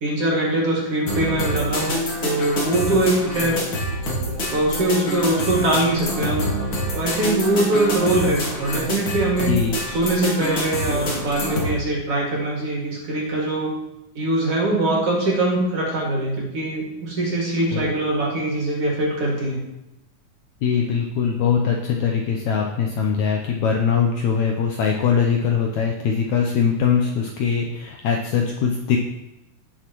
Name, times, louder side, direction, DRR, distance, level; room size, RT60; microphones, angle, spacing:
voice 1, 0.0-1.9 2.2-3.6 4.5-6.6 6.9-9.6 9.9-13.8 14.2-19.6, right 1 dB, 45° right, -4 dB, 2.9 m, -22 dB
sound 1, 1.1-11.7, equal, 45° left, 2.3 m, -26 dB
voice 2, 9.5-9.8 17.7-17.9 20.6-29.0, left 6 dB, 75° left, 1 dB, 1.8 m, -21 dB
17.5 x 6.3 x 3.0 m, 0.93 s
omnidirectional pair, 4.0 m